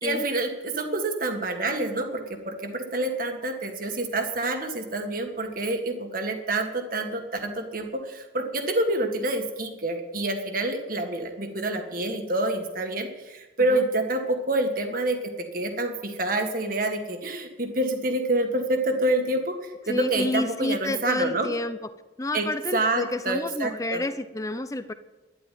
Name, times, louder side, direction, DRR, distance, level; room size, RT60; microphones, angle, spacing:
voice 1, 0.0-15.2 15.5-21.5 22.3-22.5 22.7-24.1, right 2 dB, 45° right, 4 dB, 1.9 m, -27 dB
voice 2, 19.9-21.8 22.2-24.9, left 2 dB, 15° left, 11 dB, 0.7 m, -29 dB
12.0 x 11.0 x 9.4 m, 1.1 s
head